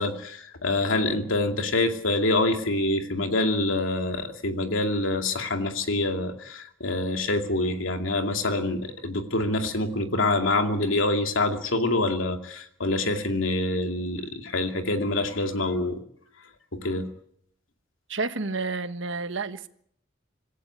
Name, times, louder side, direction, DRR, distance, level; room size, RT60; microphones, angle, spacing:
voice 1, 0.0-16.0 16.7-17.1, left 2 dB, 85° left, 2.5 m, -26 dB
voice 2, 18.1-19.7, right 3 dB, 75° right, 1.4 m, -30 dB
27.0 x 15.0 x 8.2 m
head